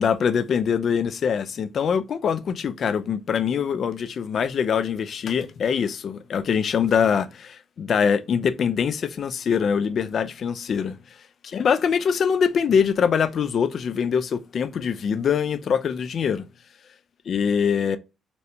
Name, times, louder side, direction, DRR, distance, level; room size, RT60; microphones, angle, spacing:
voice 1, 0.0-11.0 11.4-16.4 17.3-18.0, left 7 dB, 55° left, 0.3 m, -23 dB
4.1 x 2.1 x 2.6 m
cardioid pair, 90°, 0 cm